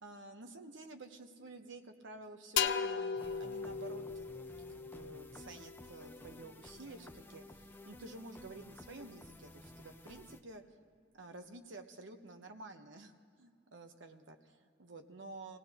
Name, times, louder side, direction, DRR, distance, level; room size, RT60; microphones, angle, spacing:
voice 1, 0.0-4.3 4.5-10.6 11.1-15.6, right 2 dB, 75° right, 6 dB, 1.0 m, -51 dB
sound 1, 2.6-6.2, left 7 dB, 60° left, 0.5 m, -37 dB
sound 2, 3.2-10.4, left 1 dB, 10° left, 0.5 m, -54 dB
25.5 x 17.5 x 3.0 m, 2.2 s
head